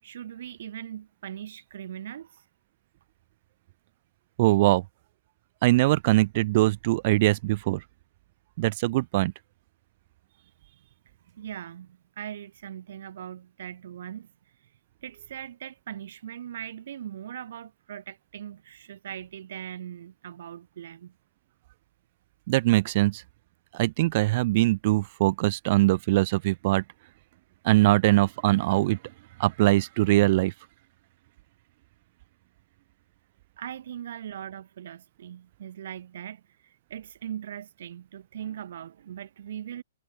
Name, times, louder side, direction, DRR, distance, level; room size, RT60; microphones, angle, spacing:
voice 1, 0.0-2.4 11.3-14.3 15.0-21.1 33.6-39.8, right 10 dB, 65° right, 6.5 m, -40 dB
voice 2, 4.4-4.8 5.6-7.8 8.6-9.3 22.5-23.2 23.7-26.8 27.6-29.0 29.4-30.5, right 19 dB, 45° right, 2.0 m, -22 dB
hypercardioid pair, 145°, 0 cm